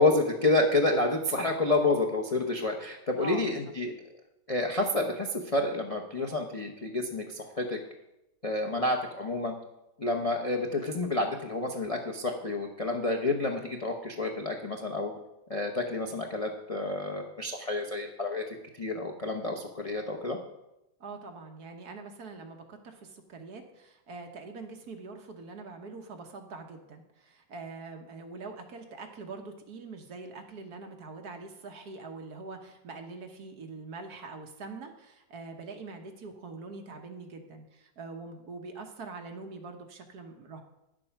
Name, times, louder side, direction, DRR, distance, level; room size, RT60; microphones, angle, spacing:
voice 1, 0.0-3.9 4.5-7.8 8.4-9.5 10.0-15.1 15.5-18.4 18.8-20.4, left 2 dB, 40° left, 2 dB, 0.5 m, -29 dB
voice 2, 3.2-3.6 21.0-40.6, right 3 dB, 60° right, 4 dB, 1.6 m, -43 dB
9.9 x 7.7 x 5.9 m, 0.90 s
omnidirectional pair, 2.0 m